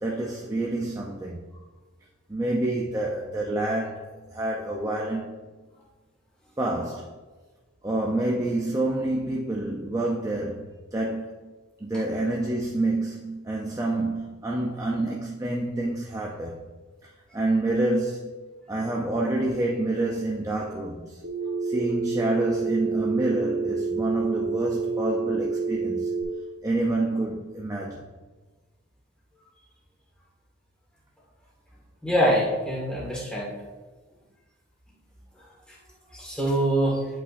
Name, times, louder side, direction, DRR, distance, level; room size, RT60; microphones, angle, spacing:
voice 1, 0.0-1.4 2.3-5.4 6.6-7.2 7.8-11.5 11.8-16.7 17.0-18.4 18.7-21.2 21.6-26.1 26.6-28.1, right 2 dB, 15° right, 0.4 m, -28 dB
Telephone, 21.2-26.2, right 4 dB, 45° right, 0.8 m, -28 dB
voice 2, 32.0-33.5 36.1-37.0, right 1 dB, 5° left, 1.6 m, -24 dB
9.8 x 5.6 x 2.5 m
head